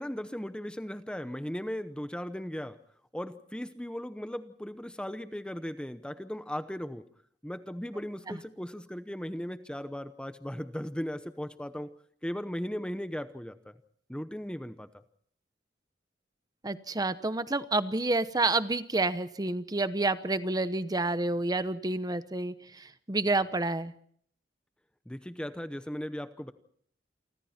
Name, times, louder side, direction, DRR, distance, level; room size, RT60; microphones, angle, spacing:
voice 1, 0.0-2.8 3.1-7.1 7.4-11.9 12.2-13.7 14.1-15.0 25.1-26.5, equal, 5° left, 10 dB, 0.8 m, -37 dB
voice 2, 16.6-23.9, right 2 dB, 20° right, 12 dB, 1.0 m, -29 dB
29.0 x 24.5 x 4.4 m, 0.62 s
head